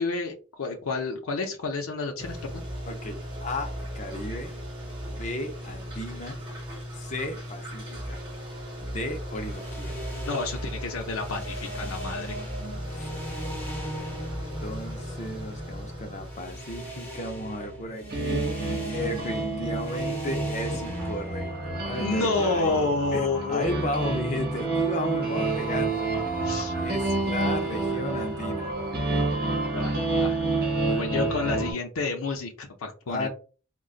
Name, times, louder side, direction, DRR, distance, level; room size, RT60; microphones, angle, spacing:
voice 1, 0.0-2.6 10.3-12.4 22.0-23.7 26.4-26.7 29.7-33.3, left 3 dB, 90° left, 0.5 m, -30 dB
sound 1, 2.2-17.4, equal, 25° right, 1.3 m, -37 dB
voice 2, 2.9-4.5 5.0-6.4 7.0-8.2 8.8-10.0 12.9-13.1 14.0-18.6 18.8-26.1 26.8-28.7 33.1-33.3, left 1 dB, 35° left, 0.5 m, -34 dB
sound 2, 9.3-23.0, right 1 dB, 10° left, 0.8 m, -40 dB
sound 3, 18.1-31.7, right 3 dB, 45° right, 1.0 m, -28 dB
3.8 x 2.2 x 2.4 m
head